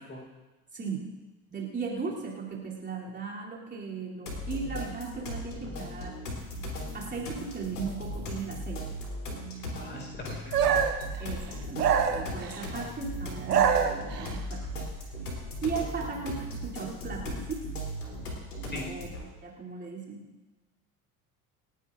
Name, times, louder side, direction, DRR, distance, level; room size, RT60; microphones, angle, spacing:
voice 1, 0.7-1.1 1.5-6.2 6.9-8.8 11.2-14.9 15.6-17.6 18.9-19.1 19.4-20.2, right 5 dB, 20° right, -5 dB, 3.0 m, -37 dB
sound 1, 4.3-19.3, equal, 75° left, 3.4 m, -37 dB
voice 2, 9.7-10.8 18.7-18.9, left 1 dB, 20° left, 0 dB, 4.6 m, -41 dB
sound 2, 10.5-11.1 11.8-12.7 13.3-14.4, right 7 dB, 80° right, 1.1 m, -25 dB
28.5 x 9.8 x 2.5 m, 1.2 s
figure-of-eight pair, 65°, 46 cm